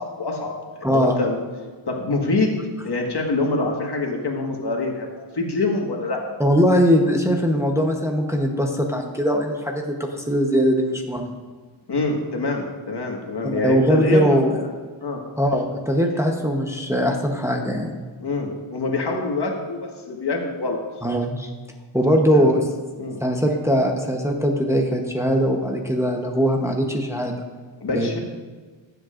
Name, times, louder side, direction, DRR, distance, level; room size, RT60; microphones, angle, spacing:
voice 1, 0.0-1.4 1.9-2.6 2.8-6.2 11.9-14.7 15.0-15.2 16.1-16.2 18.2-19.8 20.1-20.8 22.3-22.5 23.0-23.2 27.8-28.2, left 3 dB, 55° left, 0 dB, 1.7 m, -25 dB
voice 2, 0.8-1.2 6.4-11.4 13.4-14.6 15.4-18.0 21.0-21.5 21.9-22.6 23.2-27.3 27.9-28.2, equal, 5° right, 1 dB, 0.9 m, -21 dB
15.5 x 7.8 x 2.5 m, 1.4 s
wide cardioid pair, 105°, 47 cm